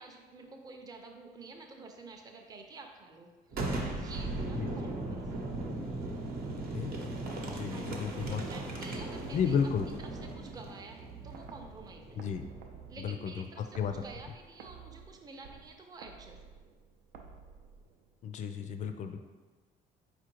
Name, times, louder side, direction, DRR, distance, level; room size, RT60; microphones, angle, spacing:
voice 1, 0.0-5.5 7.7-9.6 10.0-12.2 12.9-16.4, right 3 dB, 25° right, 2 dB, 0.5 m, -50 dB
Boom, 3.5-13.1, right 2 dB, 65° right, 0.9 m, -38 dB
voice 2, 7.5-8.4 9.3-9.9 12.2-12.4 13.0-13.3 13.8-13.9 18.2-19.2, left 7 dB, 45° left, 7 dB, 0.4 m, -32 dB
sound 1, 9.2-18.3, right 6 dB, 85° right, 0.5 m, -52 dB
4.4 x 2.5 x 4.5 m, 1.4 s
cardioid pair, 110°, 17 cm